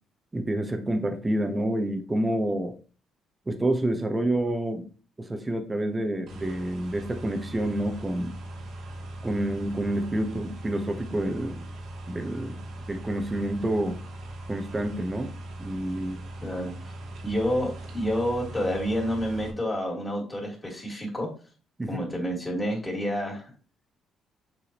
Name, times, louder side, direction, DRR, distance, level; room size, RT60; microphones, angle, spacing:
voice 1, 0.3-2.7 3.5-4.9 5.2-8.4 9.2-11.6 12.1-12.6 12.9-14.0 14.5-15.3 15.6-16.2 21.8-22.0, right 1 dB, 20° right, 6 dB, 1.1 m, -28 dB
sound 1, 6.3-19.5, right 1 dB, 75° right, 1.7 m, -40 dB
voice 2, 16.4-16.9 17.2-21.3 21.9-23.4, equal, 20° left, -2 dB, 3.4 m, -29 dB
7.1 x 4.8 x 3.1 m, 0.37 s
cardioid pair, 90°, 0 cm